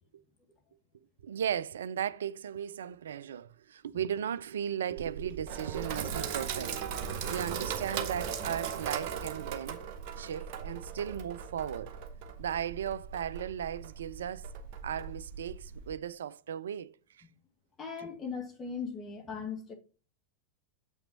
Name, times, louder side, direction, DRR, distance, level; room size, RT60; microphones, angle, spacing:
voice 1, 1.2-6.8 7.3-9.8 10.2-11.9 12.4-14.5 14.8-16.9, right 9 dB, 65° right, 0.4 m, -36 dB
Sink (filling or washing), 5.0-16.0, right 7 dB, 45° right, 1.2 m, -38 dB
voice 2, 17.8-19.7, left 5 dB, 20° left, 1.7 m, -39 dB
7.2 x 5.9 x 4.0 m
figure-of-eight pair, 90°, 0 cm